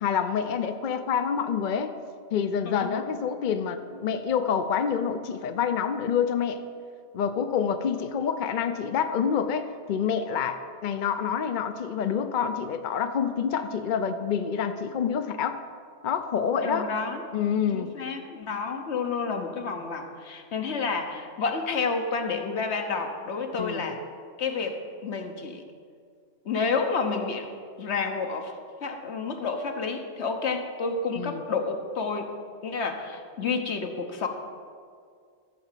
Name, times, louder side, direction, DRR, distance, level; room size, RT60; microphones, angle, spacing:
voice 1, 0.0-1.9 2.3-6.6 7.1-15.6 16.0-16.9 17.3-17.9 23.6-23.9 31.2-31.4, left 7 dB, 55° left, 9 dB, 0.7 m, -27 dB
voice 2, 16.6-17.2 17.7-24.0 24.4-25.6 26.4-27.5 27.8-28.5 28.8-32.3 32.6-34.3, left 4 dB, 80° left, 5 dB, 1.3 m, -30 dB
14.0 x 4.9 x 7.4 m, 2.1 s
omnidirectional pair, 1.1 m